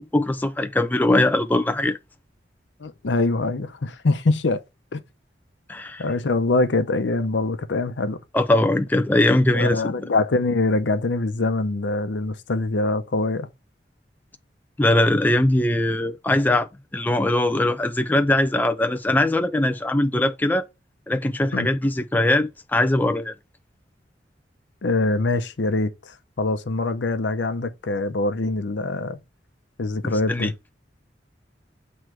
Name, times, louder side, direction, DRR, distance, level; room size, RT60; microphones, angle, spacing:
voice 1, 0.0-2.0 5.7-6.0 8.3-9.9 14.8-16.7 16.9-20.6 21.1-23.3 30.0-30.5, left 1 dB, 10° left, 0.4 m, -21 dB
voice 2, 2.8-4.6 4.9-5.0 6.0-8.2 9.5-13.5 21.5-21.7 24.8-29.2 29.8-30.5, left 2 dB, 85° left, 0.7 m, -24 dB
7.6 x 3.1 x 4.6 m
head